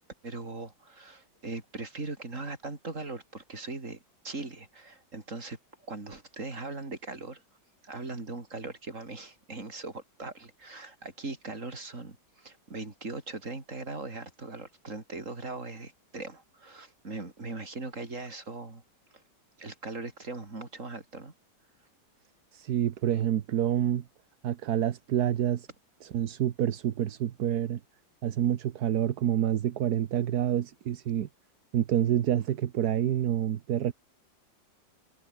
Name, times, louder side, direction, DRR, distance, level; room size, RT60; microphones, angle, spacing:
voice 1, 0.2-4.0 4.2-5.6 5.9-7.4 7.8-18.8 19.6-21.3, right 3 dB, 40° right, 4.2 m, -40 dB
voice 2, 22.5-24.0 24.4-25.7 26.0-27.8 28.2-31.3 31.7-33.9, right 10 dB, 60° right, 1.4 m, -27 dB
omnidirectional pair, 2.1 m